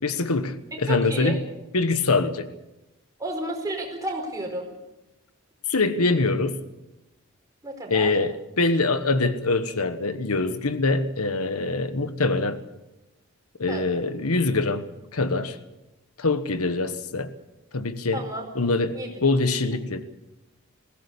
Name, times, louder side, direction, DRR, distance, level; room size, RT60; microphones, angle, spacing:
voice 1, 0.0-1.4 1.7-2.5 5.7-6.6 7.9-12.6 13.6-15.6 16.2-17.3 17.7-18.3 18.5-20.0, left 3 dB, 85° left, 1.3 m, -24 dB
voice 2, 0.7-1.4 3.2-4.7 7.6-8.1 13.7-13.8 18.1-18.5 18.9-19.1, right 1 dB, 15° right, 4.7 m, -31 dB
21.0 x 17.0 x 8.3 m
head